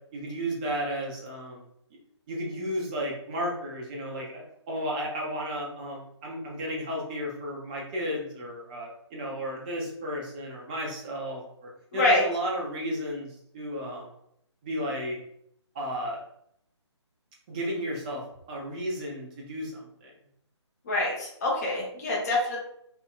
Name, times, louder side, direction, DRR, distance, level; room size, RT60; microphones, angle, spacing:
voice 1, 0.1-1.6 2.3-14.1 14.6-15.2 15.7-16.2 17.5-20.1, equal, 15° right, -2 dB, 0.5 m, -33 dB
voice 2, 11.9-12.2 20.9-22.6, left 2 dB, 35° left, -3 dB, 0.7 m, -25 dB
3.3 x 2.7 x 2.2 m, 0.72 s
figure-of-eight pair, 145°, 15 cm